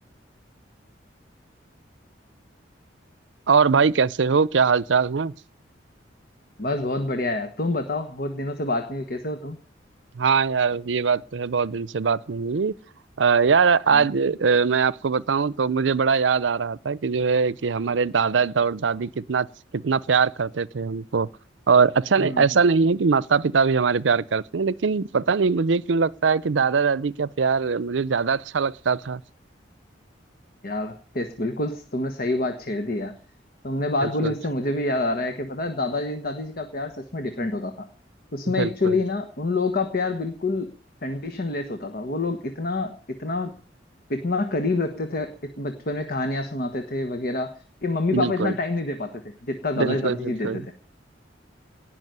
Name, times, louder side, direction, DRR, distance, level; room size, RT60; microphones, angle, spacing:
voice 1, 3.5-5.3 10.2-12.7 13.2-19.5 19.7-21.3 21.7-29.2 34.0-34.3 38.6-39.0 48.1-48.6 49.7-50.6, right 5 dB, 80° right, 0.6 m, -22 dB
voice 2, 6.6-9.6 13.9-14.1 22.2-22.5 30.6-33.2 33.6-37.9 38.3-40.7 41.0-43.6 44.1-47.5 47.8-50.7, left 2 dB, 55° left, 1.4 m, -27 dB
18.5 x 6.2 x 9.4 m
head